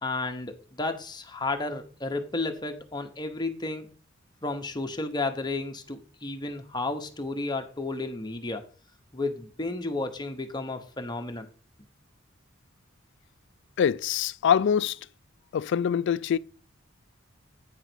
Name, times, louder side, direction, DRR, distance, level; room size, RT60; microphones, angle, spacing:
voice 1, 0.0-3.9 4.4-8.6 9.1-11.5, left 2 dB, 20° left, 1.0 m, -32 dB
voice 2, 13.8-15.0 15.5-16.4, left 8 dB, 60° left, 0.3 m, -24 dB
9.0 x 4.1 x 6.0 m
head